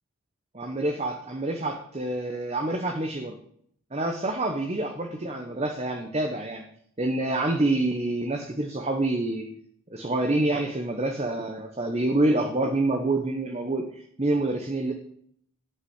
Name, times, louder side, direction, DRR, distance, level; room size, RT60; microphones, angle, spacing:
voice 1, 0.5-3.4 3.9-6.6 7.0-9.5 9.9-14.9, right 2 dB, 30° right, 3 dB, 0.9 m, -27 dB
11.5 x 5.7 x 8.0 m, 0.67 s
head